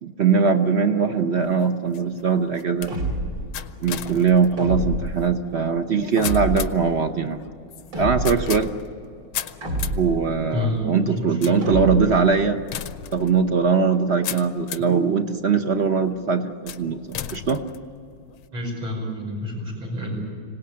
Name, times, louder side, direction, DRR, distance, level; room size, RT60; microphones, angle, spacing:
voice 1, 0.0-2.9 3.8-7.4 8.0-8.7 10.0-12.6 13.1-17.0 17.3-17.6, right 5 dB, 45° right, 7 dB, 0.9 m, -21 dB
sound 1, 1.4-15.0 15.6-16.0 16.7-18.5, left 10 dB, 85° left, 1.7 m, -37 dB
sound 2, 2.9-3.5 4.6-5.3 6.2-6.8 7.9-8.6 9.6-10.3 11.6-12.3, right 1 dB, 65° right, 3.7 m, -27 dB
voice 2, 10.5-11.6 18.5-20.2, left 1 dB, 85° right, -1 dB, 6.4 m, -28 dB
26.0 x 18.0 x 8.6 m, 2.4 s
omnidirectional pair, 2.2 m